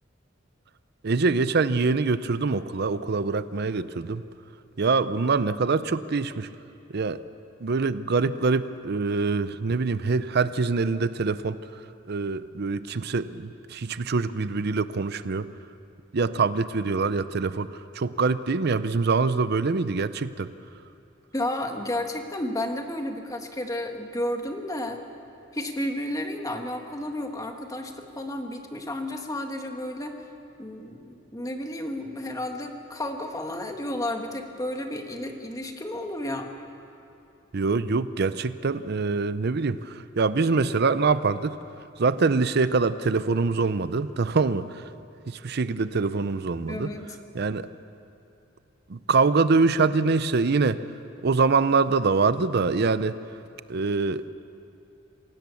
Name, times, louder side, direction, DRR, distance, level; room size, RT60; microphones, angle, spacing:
voice 1, 1.0-4.2 4.8-6.5 6.9-7.2 7.6-11.6 12.1-15.5 16.1-20.5 37.5-41.6 42.0-44.8 45.3-46.9 47.3-47.7 48.9-50.8 51.2-53.1 53.7-54.3, right 4 dB, 55° right, 14 dB, 0.6 m, -24 dB
voice 2, 21.3-25.0 25.5-30.1 30.6-36.5 46.7-47.2, left 1 dB, 20° left, 4 dB, 1.6 m, -32 dB
27.0 x 17.0 x 7.1 m, 2.8 s
head